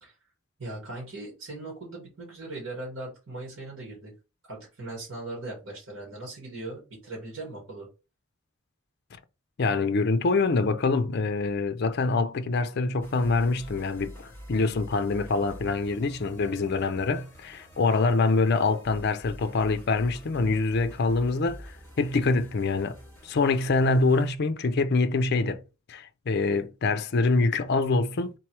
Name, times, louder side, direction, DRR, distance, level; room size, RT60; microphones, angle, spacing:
voice 1, 0.6-4.1 4.5-7.9, right 2 dB, 75° right, 2.2 m, -39 dB
voice 2, 9.6-23.0 23.2-25.6 25.9-28.3, left 3 dB, 55° left, 0.5 m, -25 dB
sound 1, 13.0-24.3, equal, 10° left, 1.5 m, -47 dB
3.8 x 3.1 x 4.6 m
head